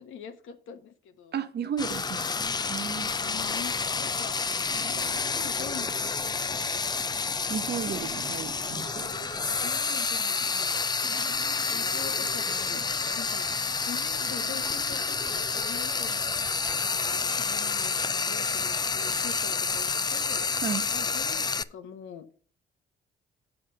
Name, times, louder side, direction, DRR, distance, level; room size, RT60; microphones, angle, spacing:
voice 1, 0.0-1.4 2.3-2.7 3.2-4.5 4.8-6.4 6.7-7.0 9.6-10.8 11.7-12.8 13.2-13.5 13.8-16.3 16.8-20.6 20.9-22.3, left 8 dB, 80° left, 1.2 m, -44 dB
voice 2, 1.3-2.3 2.7-3.1 7.5-9.1 9.4-9.5 20.6-20.9, right 7 dB, 55° right, 1.1 m, -33 dB
Frying (food), 1.8-21.6, left 4 dB, 20° left, 0.4 m, -29 dB
sound 1, 4.7-17.4, right 9 dB, 85° right, 0.9 m, -47 dB
7.5 x 5.9 x 6.6 m
cardioid pair, 90°, 20 cm